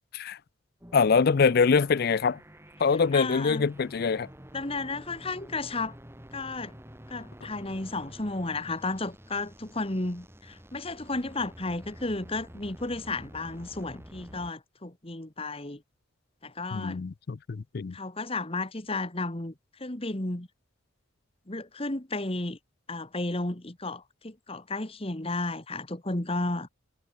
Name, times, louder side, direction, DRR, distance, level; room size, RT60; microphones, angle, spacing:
sound 1, 0.8-14.5, equal, 10° right, 6.3 m, -49 dB
voice 1, 0.9-2.4 2.8-4.3 16.7-17.9, left 5 dB, 50° left, 0.4 m, -24 dB
voice 2, 3.1-3.7 4.5-5.9 6.3-6.7 7.1-15.8 16.4-17.0 17.9-19.5 19.8-20.5 21.5-22.6 22.9-26.7, left 2 dB, 30° left, 1.7 m, -33 dB
head